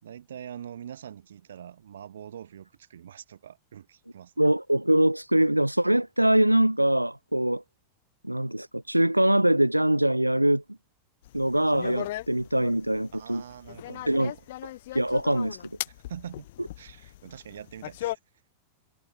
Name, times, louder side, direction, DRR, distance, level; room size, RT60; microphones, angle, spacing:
voice 1, 0.0-4.4 13.1-14.4 15.9-16.5 16.8-18.2, right 9 dB, 65° right, 5.6 m, -44 dB
voice 2, 4.4-7.6 8.2-10.6 11.3-13.4 14.1-14.3 14.6-15.6, right 1 dB, 85° right, 0.5 m, -23 dB
sound 1, 11.2-18.2, left 16 dB, 55° left, 6.0 m, -38 dB
figure-of-eight pair, 90°, 0 cm